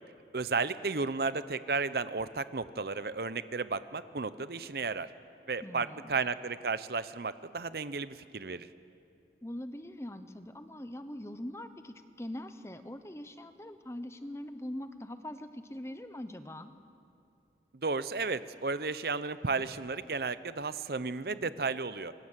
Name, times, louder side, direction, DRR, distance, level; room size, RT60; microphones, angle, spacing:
voice 1, 0.3-5.1 5.5-8.7 17.8-22.1, right 4 dB, 60° right, 14 dB, 0.7 m, -33 dB
voice 2, 5.6-6.1 9.4-16.7, left 1 dB, 15° left, 10 dB, 0.9 m, -42 dB
27.0 x 24.0 x 7.5 m, 2.6 s
head